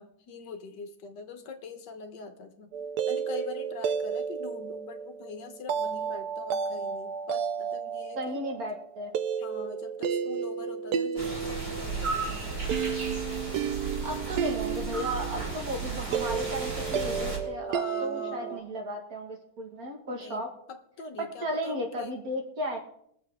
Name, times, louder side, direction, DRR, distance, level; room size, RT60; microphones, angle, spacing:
voice 1, 0.0-2.7 3.1-8.4 9.4-12.9 17.6-18.7 20.1-22.2, left 4 dB, 75° left, 7 dB, 1.7 m, -43 dB
sound 1, 2.7-18.6, right 7 dB, 75° right, 1.1 m, -33 dB
voice 2, 8.2-9.1 14.0-20.5 21.2-22.8, equal, 55° right, 2 dB, 2.1 m, -35 dB
sound 2, 11.2-17.4, right 4 dB, 35° right, 3.1 m, -34 dB
21.5 x 7.3 x 3.6 m, 0.70 s
omnidirectional pair, 1.9 m